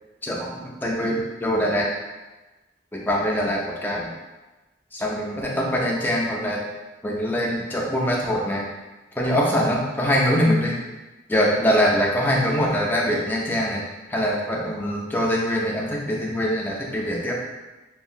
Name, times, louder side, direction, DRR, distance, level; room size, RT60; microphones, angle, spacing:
voice 1, 0.2-1.9 2.9-4.1 4.9-6.6 7.0-8.7 9.2-10.8 11.3-13.8 14.1-17.4, equal, 10° left, -2 dB, 0.3 m, -23 dB
2.8 x 2.7 x 2.4 m, 1.1 s
head